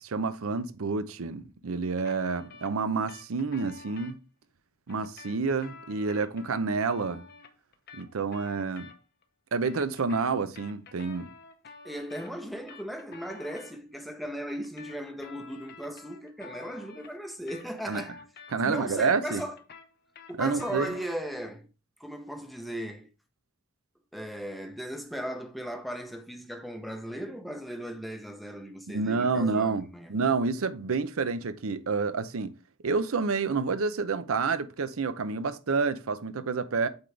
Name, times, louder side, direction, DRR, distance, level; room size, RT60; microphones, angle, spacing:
voice 1, 0.0-4.2 4.9-7.2 7.9-8.9 9.5-11.3 17.9-18.0 18.5-19.4 20.4-20.9 28.9-32.5 32.8-36.9, right 4 dB, 75° right, 0.6 m, -29 dB
sound 1, 2.0-4.1 4.9-9.2 9.5-13.7 14.5-18.8 19.1-21.2, left 5 dB, 45° left, 0.7 m, -50 dB
voice 2, 11.8-18.2 18.6-19.6 20.3-21.7 22.0-23.1 24.1-30.1, equal, ahead, 0.7 m, -37 dB
8.0 x 3.9 x 3.3 m
head